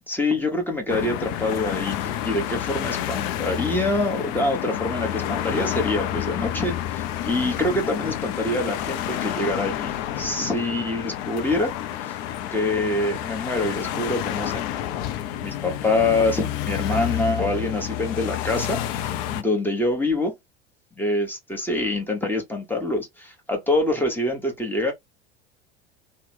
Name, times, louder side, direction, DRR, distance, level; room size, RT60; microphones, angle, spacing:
voice 1, 0.1-11.7 12.0-12.1 12.5-14.6 15.4-20.3 21.0-24.9, left 2 dB, 5° left, 1.1 m, -25 dB
sound 1, 0.9-19.4, left 11 dB, 45° left, 0.5 m, -29 dB
3.0 x 2.2 x 3.1 m
figure-of-eight pair, 70°, 30 cm